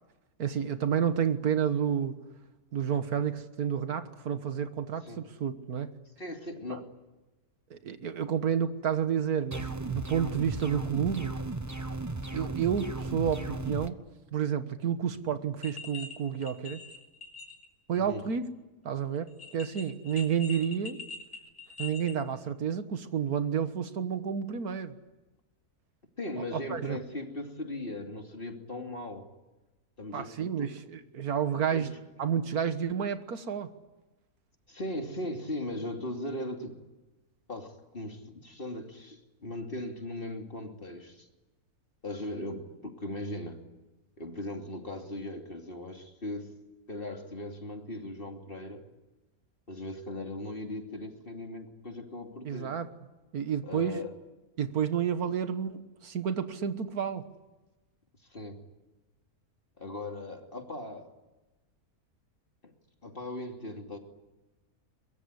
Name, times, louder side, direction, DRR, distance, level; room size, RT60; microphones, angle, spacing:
voice 1, 0.4-2.2 2.7-5.9 6.7-6.8 7.7-11.4 12.3-14.0 14.3-16.8 17.9-18.4 18.8-21.0 21.8-24.9 26.4-27.0 30.1-31.9 32.2-33.7 52.4-52.9 53.3-54.0 54.6-57.2, right 8 dB, 85° right, 10 dB, 1.9 m, -30 dB
voice 2, 6.2-6.9 17.9-18.2 26.2-29.3 30.0-30.7 31.7-31.9 34.7-36.8 37.5-41.3 42.0-43.6 44.2-46.6 46.9-48.8 49.7-52.7 53.6-54.1 58.3-58.7 59.8-61.1 62.6-62.7 63.0-64.0, left 1 dB, 40° left, 3 dB, 3.0 m, -38 dB
sound 1, 9.5-13.9, right 2 dB, 15° right, 0.8 m, -35 dB
sound 2, 15.6-16.1 16.4-17.6 17.9-18.0 19.3-22.1, left 4 dB, 10° left, 4.8 m, -43 dB
23.5 x 22.0 x 9.8 m, 1.1 s
omnidirectional pair, 1.6 m